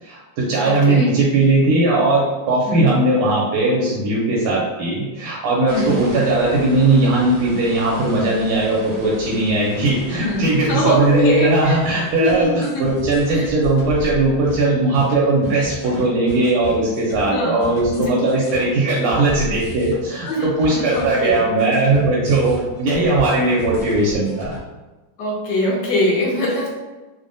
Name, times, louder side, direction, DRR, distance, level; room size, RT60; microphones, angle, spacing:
voice 1, 0.0-24.5, right 2 dB, 85° right, -4 dB, 1.5 m, -18 dB
voice 2, 0.6-1.1 2.7-2.9 5.7-6.0 10.1-11.8 12.2-13.0 13.3-13.5 17.2-18.0 20.2-21.5 25.2-26.7, left 1 dB, 70° left, -3 dB, 1.1 m, -23 dB
sound 1, 5.7-12.1, equal, 65° right, 0.8 m, -38 dB
sound 2, 12.3-24.6, left 1 dB, 90° left, 0.6 m, -34 dB
3.4 x 2.0 x 2.5 m, 1.2 s
omnidirectional pair, 2.3 m